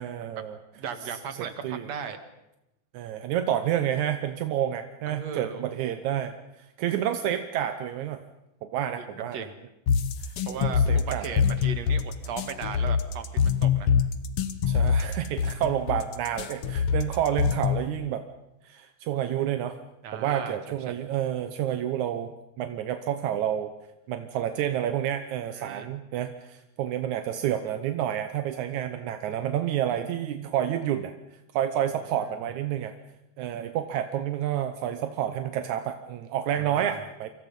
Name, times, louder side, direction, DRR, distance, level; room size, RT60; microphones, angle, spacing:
voice 1, 0.0-0.6 1.4-1.9 2.9-8.2 8.6-9.4 10.2-10.3 10.6-11.4 14.7-18.2 18.6-19.8 20.1-23.7 24.1-31.1 31.5-33.0 33.4-37.3, right 10 dB, 70° right, 8 dB, 1.9 m, -29 dB
voice 2, 0.7-2.2 5.1-5.8 9.0-9.5 10.5-13.9 20.0-20.6 20.9-21.0 25.5-25.9 32.2-32.3 36.6-37.0, right 6 dB, 50° right, 8 dB, 2.6 m, -37 dB
sound 1, 9.9-17.9, left 7 dB, 80° left, 1.3 m, -24 dB
29.0 x 25.0 x 5.4 m, 0.89 s
omnidirectional pair, 4.5 m